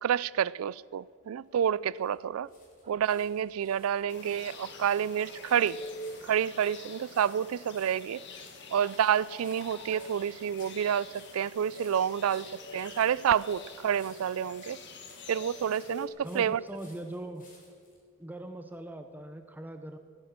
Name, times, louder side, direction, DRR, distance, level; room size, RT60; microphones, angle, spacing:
voice 1, 0.0-2.5 2.9-5.8 6.2-8.2 8.7-12.5 12.7-14.8 15.3-16.6, right 8 dB, 85° right, 0.4 m, -29 dB
sound 1, 1.4-18.0 18.7-18.8, left 2 dB, 40° left, 3.9 m, -60 dB
sound 2, 2.8-10.6 10.9-13.8, right 3 dB, 30° right, 3.6 m, -61 dB
sound 3, 4.1-16.1, left 2 dB, 60° left, 1.8 m, -45 dB
voice 2, 16.2-17.5 18.2-20.0, right 1 dB, 10° right, 0.6 m, -41 dB
17.0 x 10.5 x 6.5 m
head